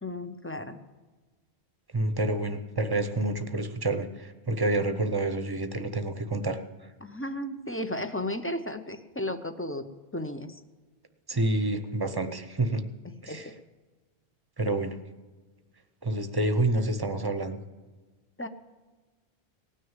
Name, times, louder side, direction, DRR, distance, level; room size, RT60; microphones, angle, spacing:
voice 1, 0.0-0.8 7.0-9.9 10.1-10.6 13.3-13.5 18.4-18.5, left 1 dB, 15° left, 8 dB, 0.6 m, -34 dB
voice 2, 1.9-6.9 11.3-12.8 13.2-13.5 14.6-15.0 16.0-17.6, right 2 dB, 25° right, 9 dB, 0.8 m, -28 dB
18.0 x 6.5 x 9.0 m, 1.3 s
omnidirectional pair, 1.1 m